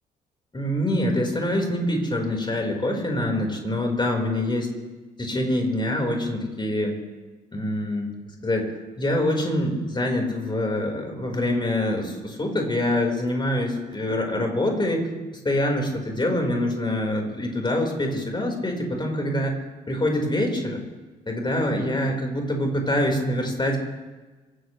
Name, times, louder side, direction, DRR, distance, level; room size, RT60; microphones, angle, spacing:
voice 1, 0.5-4.7 5.2-7.0 7.5-8.1 8.4-8.7 9.0-15.1 15.4-19.6 19.9-20.8 21.3-23.8, left 1 dB, 20° left, 1 dB, 4.7 m, -25 dB
27.0 x 14.0 x 3.3 m, 1.2 s
figure-of-eight pair, 45°, 21 cm